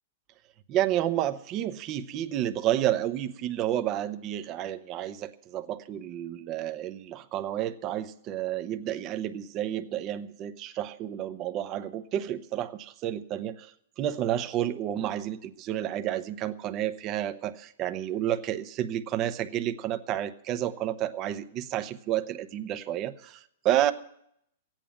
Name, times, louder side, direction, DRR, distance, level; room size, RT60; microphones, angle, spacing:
voice 1, 0.7-13.7 14.0-23.9, right 12 dB, 30° right, 9 dB, 0.8 m, -30 dB
15.5 x 9.1 x 8.8 m, 0.71 s
hypercardioid pair, 150°, 0 cm